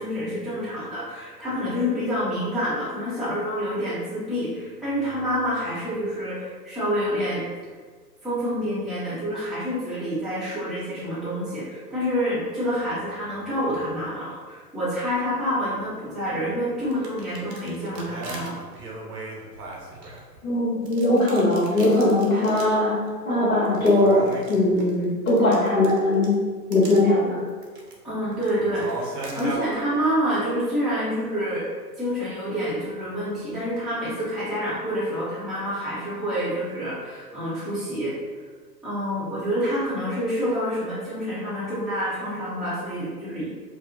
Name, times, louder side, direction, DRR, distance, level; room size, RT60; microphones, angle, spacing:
voice 1, 0.0-7.4 8.2-18.6 28.0-31.7 31.9-38.2 38.8-43.5, equal, ahead, -14 dB, 0.8 m, -27 dB
sound 1, 16.8-20.5 20.8-22.8 23.1-23.2 23.6-26.3 26.7-27.0 27.5-27.9 28.3-29.6, right 2 dB, 70° right, 0.9 m, -37 dB
voice 2, 20.4-23.0 23.2-26.3 26.7-27.4, left 1 dB, 50° left, -9 dB, 1.1 m, -20 dB
4.8 x 2.0 x 2.6 m, 1.5 s
figure-of-eight pair, 120°, 50 cm